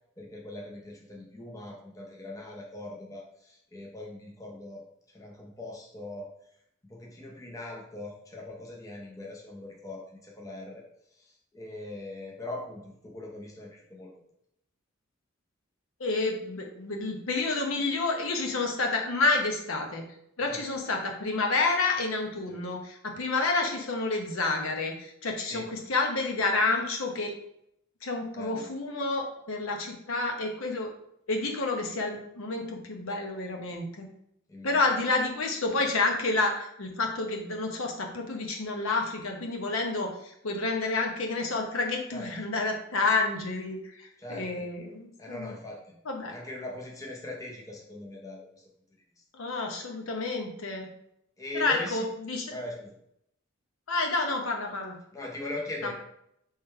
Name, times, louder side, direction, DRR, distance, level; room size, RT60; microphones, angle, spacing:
voice 1, 0.2-4.8 5.1-6.3 6.8-10.8 11.5-14.1 20.4-20.6 22.5-22.6 25.5-25.7 28.3-28.7 34.5-34.8 42.1-42.3 44.2-44.7 45.2-46.0 46.3-48.5 49.5-49.6 51.4-52.1 52.5-53.0 55.1-55.9, left 2 dB, 15° left, -1 dB, 0.6 m, -41 dB
voice 2, 16.0-20.0 20.4-27.3 28.0-30.9 31.3-34.1 34.6-45.6 46.0-46.3 49.3-50.9 51.5-52.6 53.9-55.0 55.8-55.9, left 3 dB, 80° left, 2 dB, 0.9 m, -29 dB
3.7 x 3.2 x 4.3 m, 0.75 s
head